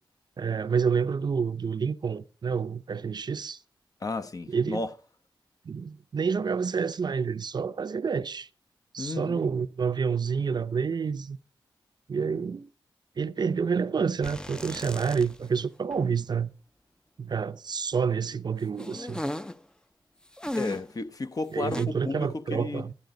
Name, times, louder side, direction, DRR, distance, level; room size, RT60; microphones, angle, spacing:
voice 1, 0.4-3.6 4.5-4.8 5.6-8.5 8.9-11.4 12.1-12.7 13.2-16.5 17.2-19.2 21.5-22.9, right 6 dB, 55° right, 0.6 m, -28 dB
voice 2, 4.0-4.9 9.0-9.4 20.5-22.9, left 3 dB, 45° left, 1.0 m, -33 dB
sound 1, 14.2-15.6 15.9-16.0 18.8-19.6 20.4-21.0 21.7-21.9, left 1 dB, 10° left, 0.6 m, -36 dB
12.0 x 10.5 x 3.8 m
cardioid pair, 70°, 9 cm